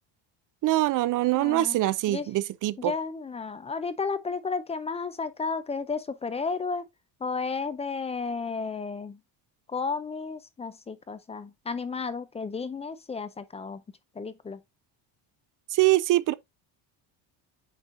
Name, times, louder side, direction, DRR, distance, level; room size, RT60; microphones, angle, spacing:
voice 1, 0.6-2.9 15.7-16.3, right 16 dB, 45° right, 0.5 m, -24 dB
voice 2, 1.3-1.8 2.1-2.3 2.8-6.9 7.2-9.2 9.7-13.8 14.2-14.6, left 4 dB, 15° left, 0.3 m, -33 dB
9.0 x 4.3 x 2.5 m
cardioid pair, 135°, 45 cm